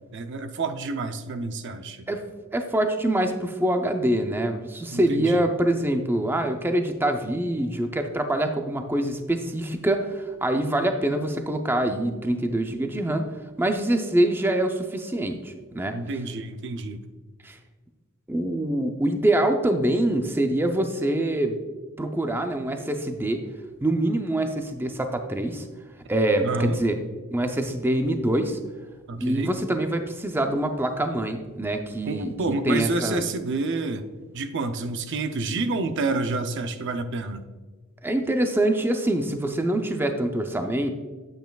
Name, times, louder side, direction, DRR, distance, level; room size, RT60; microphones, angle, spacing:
voice 1, 0.1-2.1 4.9-5.5 15.9-17.0 26.4-26.8 29.1-29.5 32.1-34.1 34.3-37.4, right 3 dB, 60° right, 8 dB, 0.5 m, -28 dB
voice 2, 2.5-13.2 13.6-16.0 17.4-17.6 18.3-21.6 22.0-23.4 23.8-25.6 26.1-27.0 27.3-28.6 29.2-33.2 38.0-40.9, right 1 dB, 10° right, 5 dB, 0.4 m, -25 dB
9.0 x 7.9 x 2.3 m, 1.3 s
head